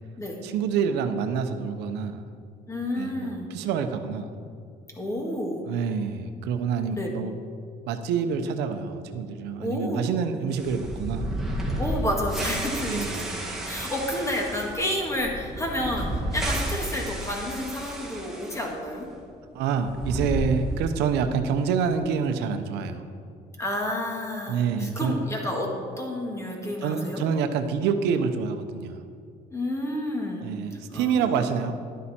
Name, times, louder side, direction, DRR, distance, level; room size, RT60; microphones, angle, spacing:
voice 1, 0.4-2.2 2.9-4.3 5.7-7.3 7.9-11.3 12.8-13.3 19.5-23.0 24.5-25.2 26.8-29.0 30.4-31.7, right 6 dB, 90° right, 8 dB, 0.7 m, -27 dB
voice 2, 2.7-3.5 5.0-5.6 6.9-7.1 9.6-10.1 11.8-19.1 23.6-27.2 29.5-30.5 30.9-31.5, left 1 dB, 15° left, 0 dB, 1.9 m, -30 dB
sound 1, 10.5-18.7 19.0-19.1 19.7-21.1, right 1 dB, 5° right, 2.1 m, -32 dB
11.0 x 9.5 x 4.3 m, 2.2 s
cardioid pair, 110°, 17 cm